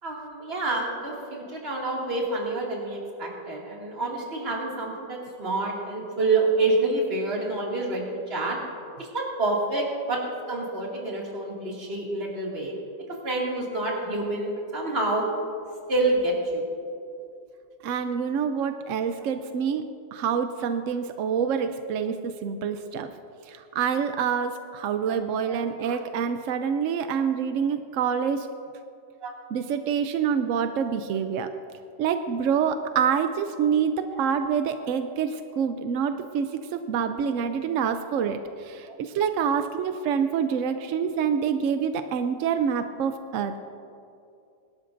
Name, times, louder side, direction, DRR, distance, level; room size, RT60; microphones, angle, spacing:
voice 1, 0.0-8.6 9.0-10.2 10.5-12.7 13.2-15.3 15.9-16.7 25.1-25.2 25.5-25.7 29.2-29.3 34.1-34.2, right 2 dB, 35° right, -3 dB, 2.5 m, -28 dB
voice 2, 17.8-19.8 20.1-23.1 23.5-28.5 29.5-31.5 32.0-43.6, right 7 dB, 70° right, 8 dB, 0.7 m, -26 dB
24.0 x 12.0 x 2.6 m, 2.5 s
omnidirectional pair, 1.9 m